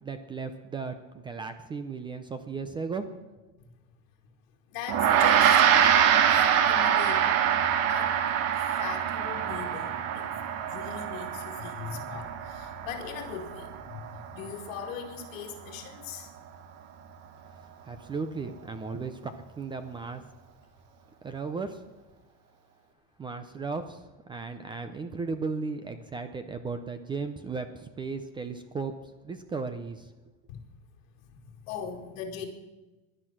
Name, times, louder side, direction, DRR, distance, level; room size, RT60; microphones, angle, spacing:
voice 1, 0.0-3.1 17.8-20.3 21.2-21.8 23.2-28.9 29.2-30.1, right 4 dB, 10° right, 10 dB, 0.5 m, -35 dB
voice 2, 4.7-7.3 7.6-8.3 8.6-16.3 30.5-30.6 31.3-32.5, left 7 dB, 60° left, -2 dB, 2.0 m, -40 dB
Gong, 4.9-14.5, right 9 dB, 40° right, 1.2 m, -25 dB
16.5 x 11.0 x 5.9 m, 1.1 s
supercardioid pair, 155°, 39 cm